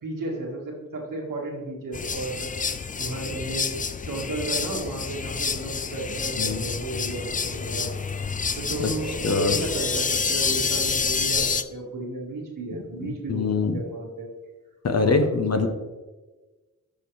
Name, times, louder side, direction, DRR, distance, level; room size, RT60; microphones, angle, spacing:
voice 1, 0.0-3.7 4.1-7.9 8.2-14.3 14.9-15.2 15.5-15.7, right 2 dB, 75° right, -1 dB, 1.7 m, -33 dB
sound 1, 1.9-11.6, left 5 dB, 25° left, 0.4 m, -28 dB
voice 2, 9.2-9.6 13.0-13.8 14.8-15.7, left 4 dB, 50° left, 7 dB, 0.8 m, -23 dB
6.6 x 5.6 x 3.2 m, 1.2 s
cardioid pair, 45°, 33 cm